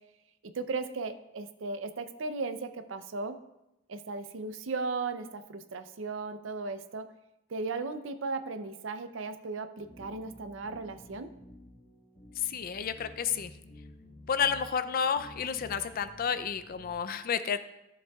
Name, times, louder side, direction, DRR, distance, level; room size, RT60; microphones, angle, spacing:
voice 1, 0.4-3.4 3.9-7.1 7.5-11.3, right 3 dB, 70° right, 10 dB, 0.5 m, -36 dB
sound 1, 9.8-16.9, left 1 dB, 30° left, 1.1 m, -52 dB
voice 2, 12.5-13.5 14.3-17.7, left 7 dB, 50° left, 12 dB, 0.4 m, -31 dB
13.5 x 7.2 x 2.3 m, 0.91 s
head